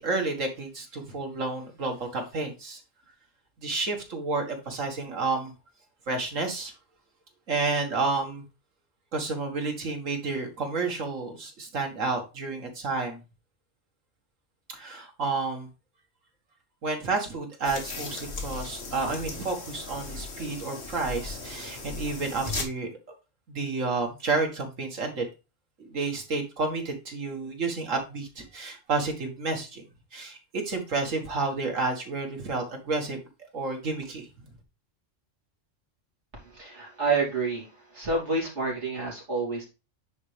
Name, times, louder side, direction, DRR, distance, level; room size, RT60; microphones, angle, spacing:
voice 1, 0.0-2.8 3.6-5.5 6.1-6.7 7.5-8.4 9.1-13.2 14.7-15.7 16.8-22.9 23.5-25.3 25.8-29.9 30.1-33.2 33.5-34.3, right 3 dB, 90° right, 3 dB, 2.3 m, -30 dB
sound 1, 17.6-22.6, left 3 dB, 55° left, 1.9 m, -37 dB
voice 2, 36.3-39.6, right 3 dB, 65° right, -3 dB, 3.5 m, -29 dB
9.5 x 4.5 x 3.4 m, 0.28 s
omnidirectional pair, 1.3 m